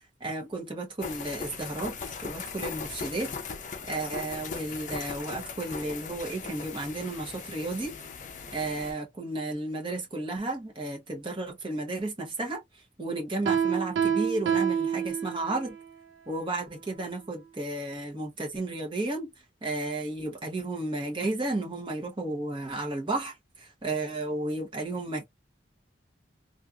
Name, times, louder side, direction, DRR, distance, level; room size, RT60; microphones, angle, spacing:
voice 1, 0.2-3.3 3.9-8.0 8.5-12.6 13.0-15.8 16.3-19.3 19.6-25.2, right 2 dB, 25° right, 1.1 m, -33 dB
sound 1, 1.0-8.9, left 5 dB, 40° left, 0.6 m, -39 dB
Piano, 13.5-15.8, right 8 dB, 65° right, 0.4 m, -27 dB
3.2 x 2.5 x 2.4 m
head